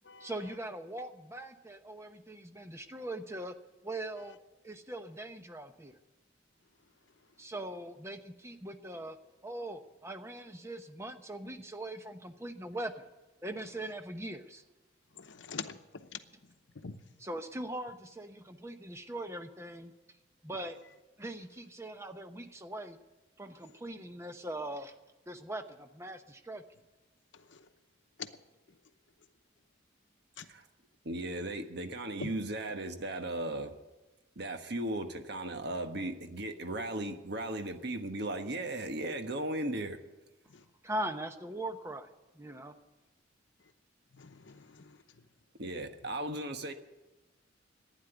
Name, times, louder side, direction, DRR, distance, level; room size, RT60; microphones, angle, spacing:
voice 1, 0.2-3.5 3.8-4.4 4.6-6.0 7.4-9.2 9.4-13.1 13.4-14.6 17.2-19.9 20.4-20.8 21.2-23.0 23.4-24.9 25.3-26.6 40.8-42.1 42.3-42.7, right 1 dB, 15° right, 0.9 m, -41 dB
voice 2, 15.2-16.2 16.8-17.0 27.5-27.6 28.2-28.3 30.4-30.5 32.2-32.3 40.5-40.6 44.1-45.0, left 5 dB, 70° left, 0.9 m, -43 dB
voice 3, 31.0-33.7 34.4-40.0 45.6-46.7, right 1 dB, 60° right, 1.3 m, -36 dB
11.5 x 9.9 x 10.0 m
head